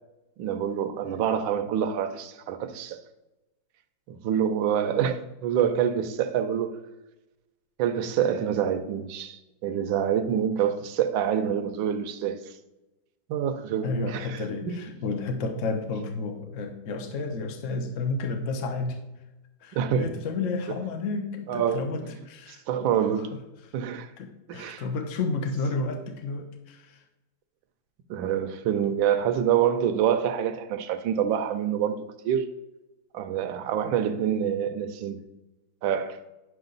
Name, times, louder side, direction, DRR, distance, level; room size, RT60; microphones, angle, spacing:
voice 1, 0.4-3.0 4.1-6.8 7.8-12.5 13.3-14.8 19.7-20.1 21.5-21.9 22.5-23.3 23.7-24.1 24.5-24.8 28.1-32.0 32.2-32.5 33.1-35.2 35.8-36.2, right 9 dB, 80° right, 1.4 m, -26 dB
voice 2, 13.8-19.0 19.6-22.9 23.2-23.3 23.9-27.0, left 3 dB, 50° left, 1.2 m, -31 dB
10.5 x 6.4 x 3.9 m
omnidirectional pair, 2.1 m